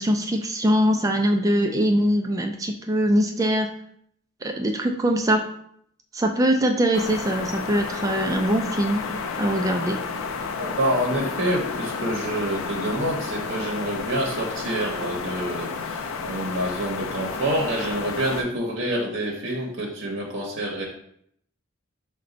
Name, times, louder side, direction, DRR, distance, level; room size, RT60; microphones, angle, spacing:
voice 1, 0.0-3.7 4.4-5.4 6.1-9.1 9.4-10.0, equal, 15° right, 3 dB, 0.3 m, -22 dB
sound 1, 6.9-18.4, left 5 dB, 80° left, 0.4 m, -31 dB
voice 2, 10.6-20.9, right 1 dB, 60° right, -1 dB, 0.7 m, -27 dB
5.0 x 2.2 x 3.8 m, 0.69 s
head